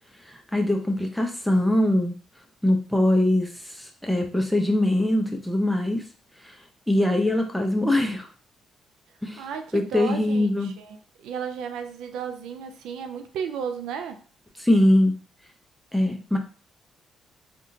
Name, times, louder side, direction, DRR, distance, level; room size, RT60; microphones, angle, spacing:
voice 1, 0.3-2.1 2.6-3.5 4.0-6.0 6.9-8.3 9.2-9.4 9.7-10.7 14.6-15.1 15.9-16.4, left 1 dB, ahead, 0.7 m, -22 dB
voice 2, 9.4-14.2, right 7 dB, 90° right, 0.4 m, -34 dB
3.5 x 2.4 x 2.7 m
cardioid pair, 90°, 0 cm